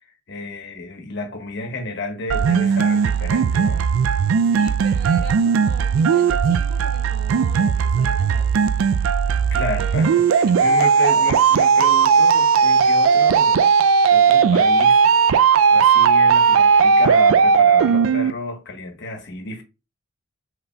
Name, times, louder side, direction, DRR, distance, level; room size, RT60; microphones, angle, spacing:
voice 1, 0.3-3.8 9.5-13.7 14.1-15.0 15.7-19.6, left 2 dB, 60° left, 1.2 m, -31 dB
sound 1, 2.3-18.3, right 6 dB, 90° right, 0.3 m, -17 dB
voice 2, 4.4-8.7 11.0-11.3, right 1 dB, 50° right, 2.0 m, -40 dB
5.5 x 4.0 x 2.2 m
head